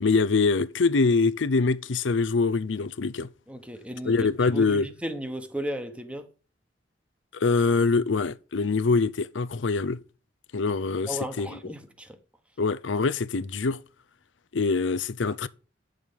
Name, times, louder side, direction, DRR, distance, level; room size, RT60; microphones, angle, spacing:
voice 1, 0.0-3.3 4.0-4.9 7.3-10.0 10.5-11.6 12.6-13.8 14.5-15.5, left 4 dB, 80° left, 0.6 m, -24 dB
voice 2, 3.5-6.3 11.1-12.2, equal, 5° right, 1.2 m, -35 dB
9.2 x 6.4 x 5.2 m
head